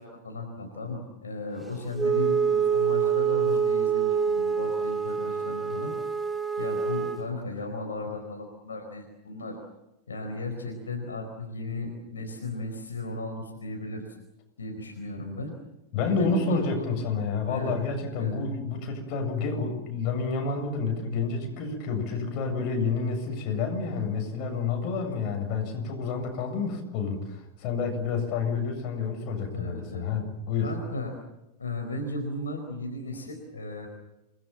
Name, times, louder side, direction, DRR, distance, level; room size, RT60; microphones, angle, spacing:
voice 1, 0.0-5.9 6.6-9.5 10.1-14.1 14.6-15.5 16.2-16.8 17.4-17.7 18.2-18.3 29.5-30.1 30.6-31.1 31.6-33.9, left 2 dB, 70° left, 3 dB, 4.6 m, -35 dB
Wind instrument woodwind instrument, 2.0-7.3, right 6 dB, 10° right, 2.1 m, -26 dB
voice 2, 15.9-30.8, left 4 dB, 40° left, 3 dB, 7.8 m, -29 dB
28.5 x 21.0 x 7.4 m, 0.94 s
figure-of-eight pair, 90°, 0 cm